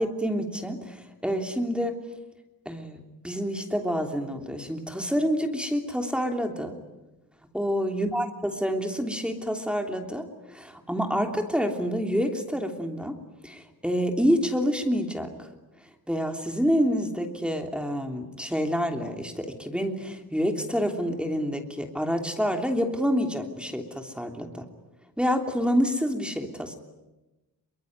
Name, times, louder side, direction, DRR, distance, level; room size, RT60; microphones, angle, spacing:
voice 1, 0.0-1.9 2.6-6.8 7.5-13.1 13.4-15.5 16.1-24.6 25.2-26.7, equal, 5° right, 4 dB, 3.1 m, -28 dB
27.0 x 23.5 x 9.4 m, 1.0 s
wide cardioid pair, 115°, 36 cm